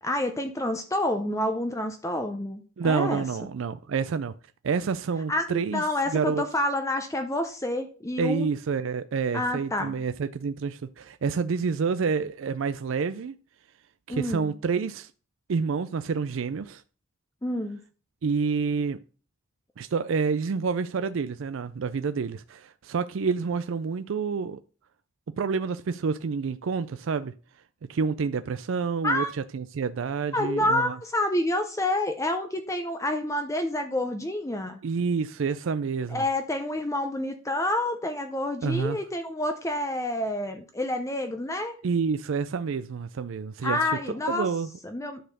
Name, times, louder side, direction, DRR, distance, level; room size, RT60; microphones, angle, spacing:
voice 1, 0.0-3.2 5.3-8.5 9.3-10.0 14.1-14.5 17.4-17.8 29.0-29.3 30.3-34.8 36.1-41.7 43.6-44.5 44.8-45.2, left 1 dB, 15° left, 0.7 m, -28 dB
voice 2, 2.8-4.3 4.6-6.4 8.2-13.3 14.1-15.1 15.5-16.8 18.2-19.0 19.8-24.6 25.4-27.3 27.9-29.2 29.5-31.0 34.8-36.2 38.6-39.0 41.8-43.9 44.3-44.7, right 5 dB, 65° right, 0.4 m, -28 dB
10.0 x 4.2 x 6.6 m
head